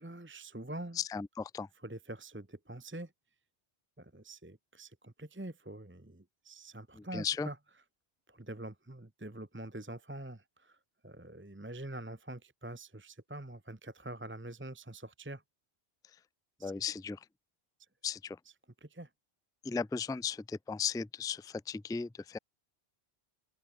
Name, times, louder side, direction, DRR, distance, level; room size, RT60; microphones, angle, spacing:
voice 1, 0.0-1.0 1.8-3.1 4.0-7.6 8.3-10.8 11.0-15.4 16.6-16.7 18.8-19.1, right 1 dB, 10° right, 1.0 m, -45 dB
voice 2, 1.0-1.7 7.0-7.5 16.6-17.2 18.0-18.4 19.6-22.4, left 6 dB, 5° left, 0.4 m, -36 dB
open air
omnidirectional pair, 1.1 m